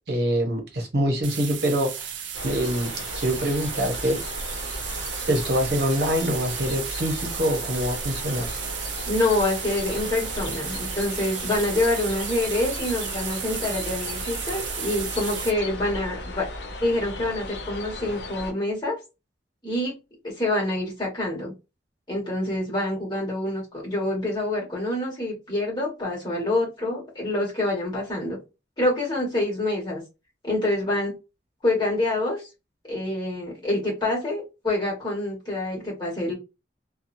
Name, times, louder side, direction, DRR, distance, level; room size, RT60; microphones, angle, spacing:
voice 1, 0.1-2.1 2.4-2.9 3.2-4.2 5.3-8.5, equal, 60° right, 3 dB, 0.8 m, -25 dB
sound 1, 1.2-15.5, right 8 dB, 85° right, 0.5 m, -34 dB
sound 2, 2.3-18.5, left 2 dB, 65° left, 0.6 m, -36 dB
voice 2, 9.0-16.5 16.8-19.0 19.6-19.9 20.4-21.5 22.1-28.4 28.8-30.0 30.4-31.1 31.6-32.4 32.9-36.3, left 2 dB, 25° left, -3 dB, 1.4 m, -26 dB
2.9 x 2.2 x 2.5 m, 0.26 s
head